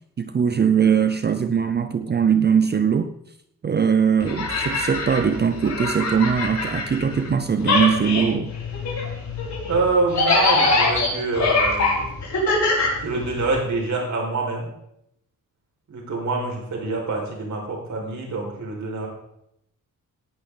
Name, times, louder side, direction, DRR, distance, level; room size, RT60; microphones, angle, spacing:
voice 1, 0.2-3.1 3.6-8.5, right 7 dB, 30° right, 10 dB, 0.6 m, -21 dB
sound 1, 4.2-7.3 7.6-13.6, left 3 dB, 55° left, 5.7 m, -23 dB
sound 2, 6.6-11.3, left 10 dB, 80° left, 4.4 m, -38 dB
voice 2, 9.7-12.1 13.0-14.7 15.9-19.1, right 3 dB, 55° right, -1 dB, 4.8 m, -26 dB
18.0 x 11.0 x 3.9 m, 0.78 s
wide cardioid pair, 150°, 34 cm